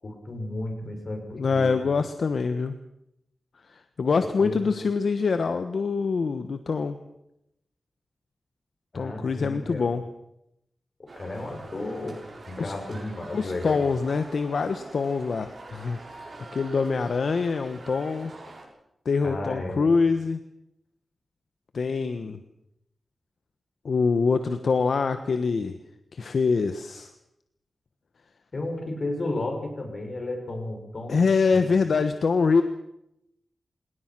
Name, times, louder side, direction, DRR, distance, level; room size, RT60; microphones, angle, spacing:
voice 1, 0.0-1.2 1.5-1.9 4.2-4.6 8.9-9.9 11.1-12.2 12.4-13.8 19.2-19.9 28.5-31.2 31.5-31.7, left 2 dB, 50° left, 3 dB, 6.5 m, -33 dB
voice 2, 1.3-2.8 3.7-7.0 8.9-10.0 12.6-12.7 13.3-18.3 19.0-20.4 21.7-22.4 23.8-25.8 26.1-27.1 31.1-32.6, left 4 dB, 75° left, 9 dB, 1.2 m, -25 dB
sound 1, 11.1-18.6, right 2 dB, 55° right, 6.8 m, -45 dB
28.0 x 18.0 x 6.1 m, 0.82 s
wide cardioid pair, 80°, 0 cm